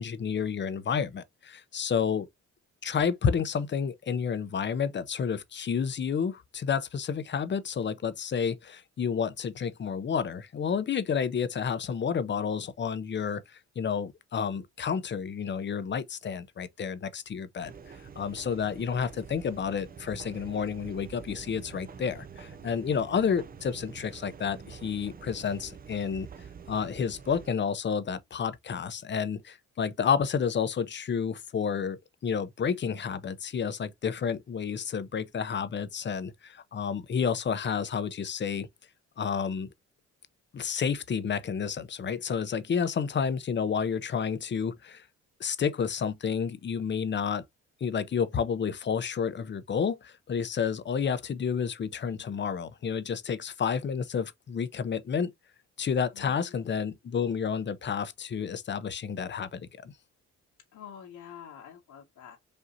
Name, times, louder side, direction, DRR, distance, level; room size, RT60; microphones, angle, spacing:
voice 1, 0.0-2.3 2.8-17.7 18.2-26.3 26.7-38.7 39.2-39.7 40.5-45.0 45.4-47.4 47.8-55.3 55.8-59.9, left 6 dB, 35° left, 0.6 m, -30 dB
sound 1, 17.6-27.5, right 6 dB, 30° right, 0.5 m, -46 dB
voice 2, 56.1-56.7 60.7-62.4, left 8 dB, 80° left, 1.7 m, -47 dB
5.0 x 2.7 x 2.6 m
cardioid pair, 90°, 30 cm